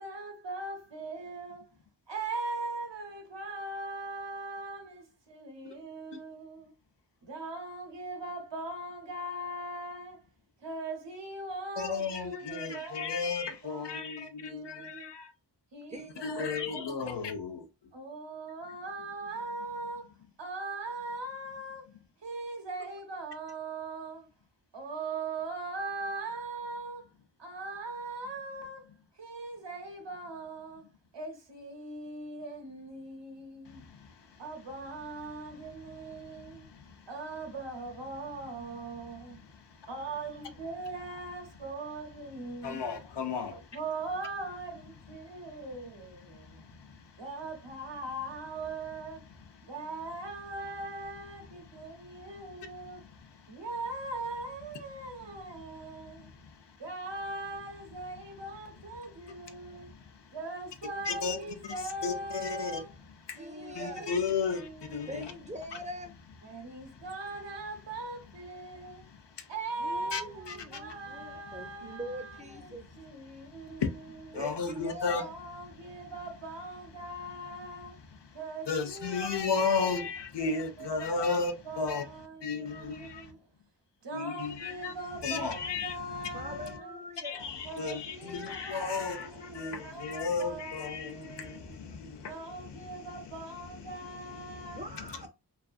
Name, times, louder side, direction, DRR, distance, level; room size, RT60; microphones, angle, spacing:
voice 1, 0.0-1.7 2.1-6.7 7.2-10.2 10.6-15.1 15.7-16.6 17.9-20.1 20.4-21.9 22.2-24.3 24.7-27.1 27.4-28.9 29.2-30.9 31.1-33.9 34.4-36.7 37.1-39.4 39.9-42.8 43.5-46.7 47.2-49.2 49.6-53.0 53.5-56.3 56.8-59.9 60.3-63.0 63.4-65.1 66.4-69.0 69.5-74.6 75.1-78.0 78.3-80.1 80.4-83.4 84.0-87.0 87.6-91.8 92.3-94.9, right 2 dB, 90° right, 0.8 m, -40 dB
voice 2, 11.8-15.3 16.2-17.6 42.6-43.5 61.1-61.4 62.0-62.1 62.4-62.7 63.3-63.4 63.7-65.2 70.1-70.2 74.3-75.2 78.7-81.5 81.8-82.0 82.4-83.2 84.1-84.9 85.2-85.9 87.2-92.3, left 5 dB, 75° left, 0.5 m, -33 dB
voice 3, 15.9-16.7 17.1-17.2 63.4-64.1 65.1-66.1 69.8-72.8 74.3-75.3 86.3-87.5 94.7-95.3, equal, 15° right, 0.5 m, -43 dB
2.5 x 2.5 x 2.3 m
wide cardioid pair, 60°, 42 cm